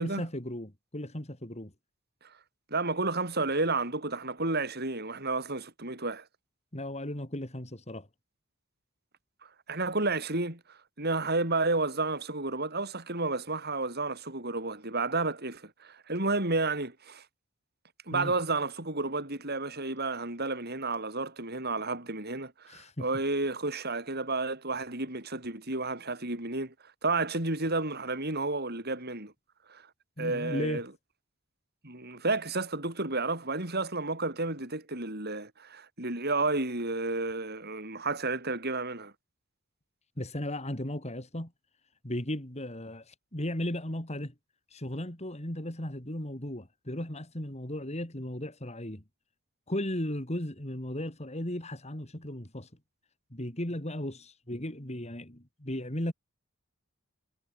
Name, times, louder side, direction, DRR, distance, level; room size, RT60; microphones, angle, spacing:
voice 1, 0.0-1.7 6.7-8.1 18.1-18.3 22.7-23.1 30.2-30.8 40.2-41.5 42.0-44.3 44.7-49.0 49.7-52.7 53.3-56.1, left 1 dB, 30° left, 3.7 m, -36 dB
voice 2, 2.7-6.2 9.7-10.6 11.0-17.2 18.1-26.7 27.0-29.3 29.7-29.8 30.2-30.9 31.8-39.1, right 3 dB, 50° right, 7.2 m, -31 dB
head